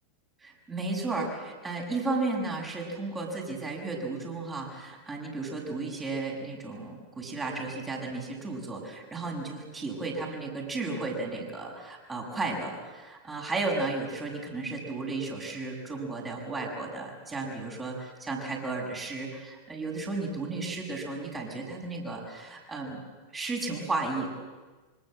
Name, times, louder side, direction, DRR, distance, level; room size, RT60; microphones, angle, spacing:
voice 1, 0.4-23.0 23.3-24.3, right 3 dB, 15° right, -1 dB, 6.8 m, -34 dB
25.5 x 25.0 x 7.7 m, 1.3 s
figure-of-eight pair, 90°, 0 cm